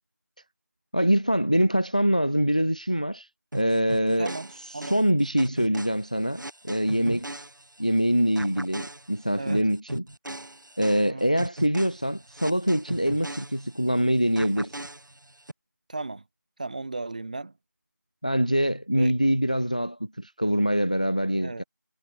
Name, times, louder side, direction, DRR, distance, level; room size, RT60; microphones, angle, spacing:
voice 1, 0.9-3.3 3.5-4.3 4.8-7.3 7.8-10.1 10.8-14.8 18.2-21.6, equal, 25° left, 0.5 m, -24 dB
sound 1, 3.5-8.0 8.4-14.0 14.4-15.5, right 1 dB, 85° right, 1.7 m, -38 dB
voice 2, 9.4-9.7 11.0-11.3 15.9-16.2 16.6-17.5 18.9-19.1 21.4-21.6, right 3 dB, 25° right, 4.0 m, -35 dB
figure-of-eight pair, 175°, 10 cm